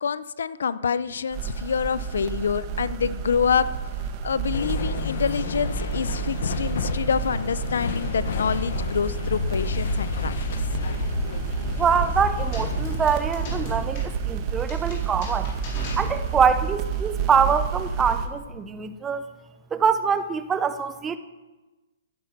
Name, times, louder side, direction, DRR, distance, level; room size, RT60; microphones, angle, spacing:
voice 1, 0.0-3.7 4.2-10.3, left 6 dB, 80° left, 17 dB, 0.6 m, -26 dB
sound 1, 1.3-18.3, right 7 dB, 30° right, 1.3 m, -30 dB
sound 2, 4.5-13.1, left 6 dB, 60° left, 1.3 m, -30 dB
voice 2, 11.8-15.5 16.0-19.2 19.7-21.2, right 6 dB, 10° right, 11 dB, 0.7 m, -24 dB
sound 3, 12.5-16.6, left 3 dB, 40° left, 4.0 m, -37 dB
14.5 x 9.5 x 5.9 m, 1.1 s
hypercardioid pair, 160°, 0 cm